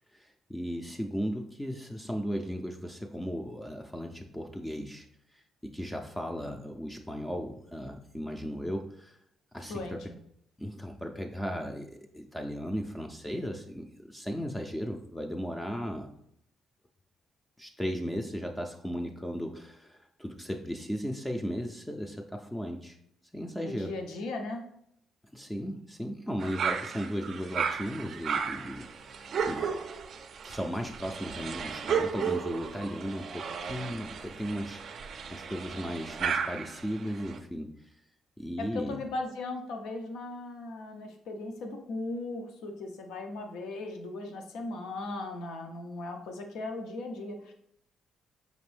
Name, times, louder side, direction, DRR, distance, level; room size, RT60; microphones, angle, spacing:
voice 1, 0.1-5.1 5.3-9.2 9.5-10.1 10.6-16.1 17.6-23.0 23.3-23.9 25.3-29.7 30.4-37.9 38.4-39.0, equal, 10° left, 3 dB, 0.4 m, -36 dB
voice 2, 23.6-24.6 38.6-47.5, left 2 dB, 85° left, 4 dB, 0.7 m, -37 dB
sound 1, 26.4-37.4, right 6 dB, 60° right, 0.4 m, -34 dB
5.1 x 2.6 x 3.3 m, 0.73 s
cardioid pair, 90°, 0 cm